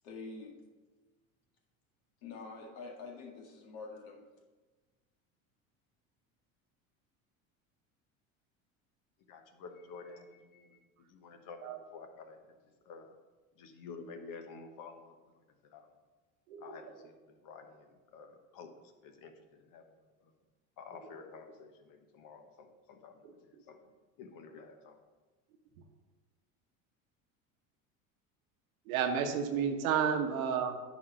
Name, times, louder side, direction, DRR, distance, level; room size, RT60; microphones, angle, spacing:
voice 1, 0.0-0.5 2.2-4.2, left 4 dB, 65° left, 0 dB, 2.0 m, -46 dB
voice 2, 9.3-10.8 11.1-12.6 12.8-13.2 13.6-16.0 16.6-20.3 20.8-25.0, left 4 dB, 50° left, 6 dB, 1.2 m, -51 dB
voice 3, 16.5-16.8 28.9-30.7, right 7 dB, 75° right, 5 dB, 1.2 m, -31 dB
10.5 x 4.2 x 6.1 m, 1.3 s
hypercardioid pair, 75°, 42 cm